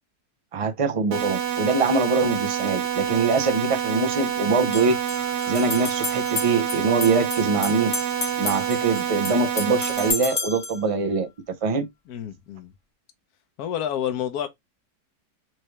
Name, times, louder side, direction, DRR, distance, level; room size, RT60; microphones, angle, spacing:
voice 1, 0.5-5.0 5.5-7.9 8.4-11.3 11.6-11.9, right 4 dB, 50° right, 0.4 m, -23 dB
sound 1, 1.1-10.1, right 9 dB, 90° right, 1.5 m, -27 dB
sound 2, 2.9-3.0 4.6-10.8, left 3 dB, 30° left, 0.8 m, -32 dB
voice 2, 12.1-12.7 13.6-14.5, left 10 dB, 70° left, 1.3 m, -29 dB
4.6 x 3.4 x 3.1 m
omnidirectional pair, 1.7 m